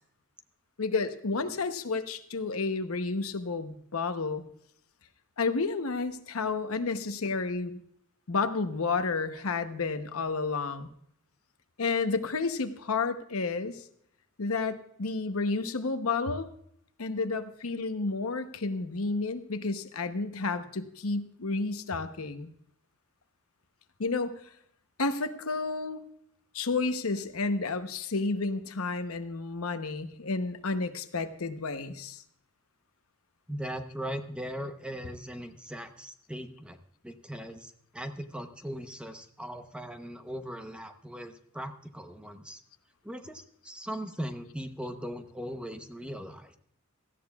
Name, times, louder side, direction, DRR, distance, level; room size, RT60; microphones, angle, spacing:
voice 1, 0.8-4.4 5.4-7.8 8.3-10.9 11.8-13.8 14.4-16.5 17.0-22.5 24.0-24.3 25.0-26.0 26.5-32.2, left 3 dB, 75° left, 9 dB, 0.9 m, -31 dB
voice 2, 33.5-36.8 37.0-42.6 43.0-46.6, equal, 5° right, 7 dB, 0.8 m, -39 dB
17.5 x 14.0 x 2.4 m, 0.69 s
head